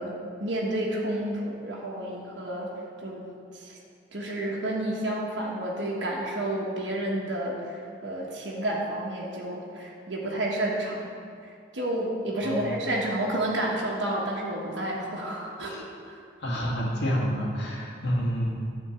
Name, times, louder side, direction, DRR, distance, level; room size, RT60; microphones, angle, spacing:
voice 1, 0.0-2.7 3.0-3.8 4.1-11.1 11.7-16.2, right 1 dB, 85° right, -3 dB, 1.4 m, -30 dB
voice 2, 16.4-18.8, equal, 75° left, -3 dB, 1.9 m, -29 dB
9.9 x 4.4 x 7.1 m, 2.3 s
head